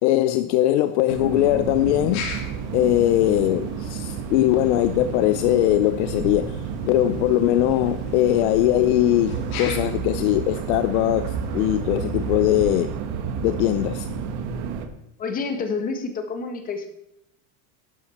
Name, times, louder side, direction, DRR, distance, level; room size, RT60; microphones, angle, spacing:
voice 1, 0.0-2.3 2.7-13.0 13.4-14.1, left 14 dB, 55° left, 0.6 m, -21 dB
sound 1, 1.1-14.9, right 6 dB, 50° right, 1.6 m, -30 dB
sound 2, 1.3-12.9, left 5 dB, 75° left, 3.9 m, -42 dB
voice 2, 15.2-16.9, left 4 dB, 20° left, 1.3 m, -28 dB
12.0 x 11.5 x 4.3 m
supercardioid pair, 170°, 43 cm